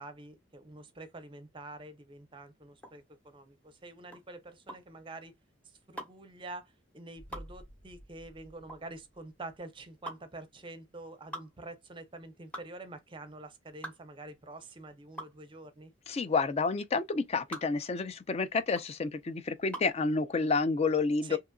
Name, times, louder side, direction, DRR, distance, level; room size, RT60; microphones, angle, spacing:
voice 1, 0.0-5.3 5.9-15.9 21.2-21.4, right 2 dB, 25° right, 0.6 m, -47 dB
sound 1, 2.8-20.0, right 1 dB, 5° left, 0.9 m, -46 dB
sound 2, 7.1-9.8 10.1-10.2, right 1 dB, 85° left, 1.2 m, -53 dB
voice 2, 16.1-21.4, left 4 dB, 30° left, 0.4 m, -29 dB
2.8 x 2.4 x 2.2 m
head